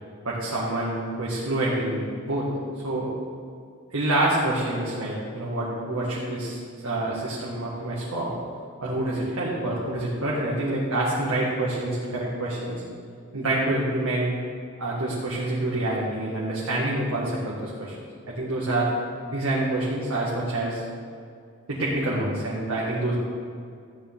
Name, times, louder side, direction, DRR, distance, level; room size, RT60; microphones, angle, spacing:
voice 1, 0.3-2.5 2.8-3.1 3.9-8.3 8.8-12.8 13.3-14.3 14.8-17.9 18.3-18.9 19.3-20.8 21.7-23.1, right 1 dB, 90° right, -6 dB, 1.8 m, -27 dB
14.0 x 9.4 x 3.6 m, 2.3 s
head